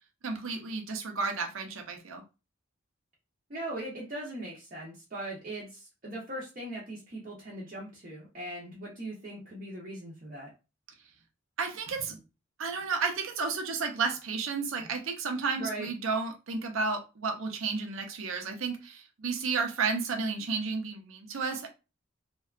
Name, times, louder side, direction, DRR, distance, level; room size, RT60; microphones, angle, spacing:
voice 1, 0.2-2.2 11.6-12.2 12.6-21.7, right 4 dB, 80° right, 4 dB, 0.6 m, -32 dB
voice 2, 3.5-10.5 15.6-15.9, right 1 dB, 40° right, -5 dB, 0.6 m, -39 dB
2.6 x 2.2 x 2.3 m, 0.29 s
head